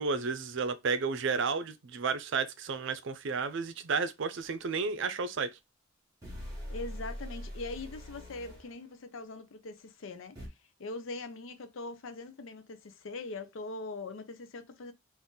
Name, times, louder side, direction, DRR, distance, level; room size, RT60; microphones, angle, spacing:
voice 1, 0.0-5.5, right 4 dB, 65° right, 0.5 m, -32 dB
sound 1, 4.4-4.5 6.2-8.7 10.3-10.5, equal, 20° right, 1.8 m, -42 dB
voice 2, 6.7-10.4 10.8-14.9, left 3 dB, 70° left, 0.5 m, -42 dB
3.8 x 2.5 x 3.8 m
head